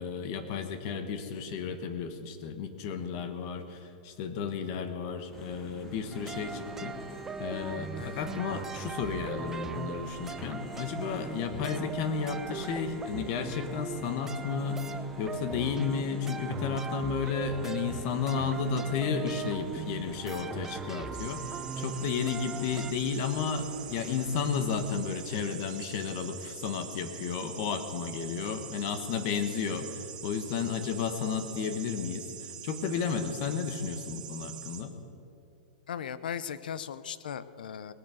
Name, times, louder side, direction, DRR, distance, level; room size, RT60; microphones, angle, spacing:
voice 1, 0.0-7.0 7.4-14.8 15.2-34.9, left 6 dB, 35° left, 8 dB, 1.2 m, -33 dB
sound 1, 5.3-24.9, left 1 dB, 10° left, 1.4 m, -49 dB
sound 2, 6.1-22.9, right 5 dB, 10° right, 0.3 m, -40 dB
sound 3, 21.1-34.8, right 9 dB, 55° right, 1.9 m, -44 dB
voice 2, 35.9-37.9, left 8 dB, 80° left, 15 dB, 0.7 m, -38 dB
19.0 x 8.8 x 6.4 m, 2.8 s
supercardioid pair, 170°, 5 cm